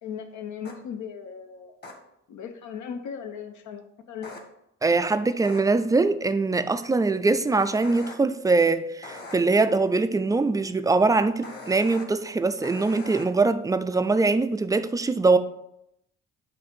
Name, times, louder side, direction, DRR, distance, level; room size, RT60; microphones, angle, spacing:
voice 1, 0.0-1.8 2.3-4.4, left 7 dB, 75° left, 0.7 m, -37 dB
sound 1, 0.6-0.7 1.8-1.9 4.2-4.4 5.4-5.6 7.8-8.1 9.0-9.3 11.4-12.0 12.6-13.2, left 2 dB, 35° left, 1.2 m, -40 dB
voice 2, 4.8-15.4, right 3 dB, 10° right, 0.3 m, -22 dB
7.7 x 2.6 x 5.2 m
cardioid pair, 90°, 30 cm